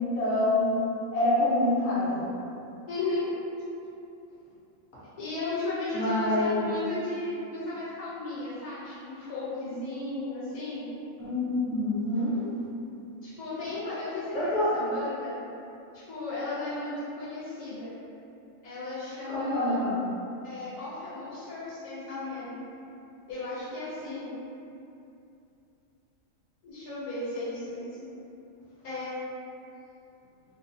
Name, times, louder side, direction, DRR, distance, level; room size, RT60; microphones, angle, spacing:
voice 1, 0.1-0.7 1.1-2.3 5.9-6.7 11.2-12.4 14.3-14.7 19.3-20.1, left 1 dB, 55° left, -11 dB, 1.1 m, -26 dB
voice 2, 2.9-3.3 5.2-10.9 13.2-15.4 15.9-17.9 18.6-19.8 20.4-22.6 23.3-24.3 26.6-28.1 28.8-29.7, left 2 dB, 90° left, -11 dB, 1.2 m, -35 dB
2.8 x 2.0 x 2.6 m, 2.7 s
omnidirectional pair, 1.5 m